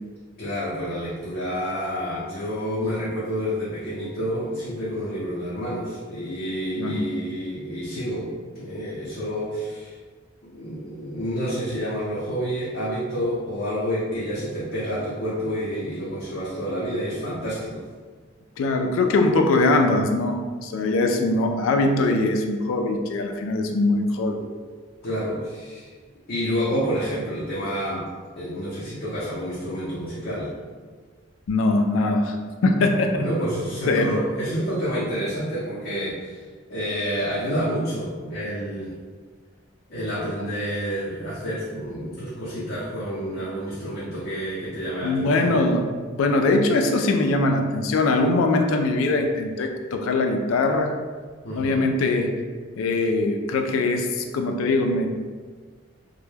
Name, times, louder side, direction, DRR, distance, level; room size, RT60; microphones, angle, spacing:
voice 1, 0.4-8.3 8.5-9.9 10.4-17.8 25.0-25.9 26.3-28.1 28.4-30.5 33.1-36.4 36.7-38.9 39.9-45.6 51.4-51.9, equal, 50° left, -10 dB, 0.6 m, -29 dB
voice 2, 18.6-24.4 31.5-33.5 33.9-34.2 43.4-43.5 45.0-45.8 46.2-50.9 51.6-52.4 52.8-55.1, left 2 dB, 90° left, 5 dB, 0.3 m, -22 dB
2.1 x 2.1 x 3.2 m, 1.5 s
head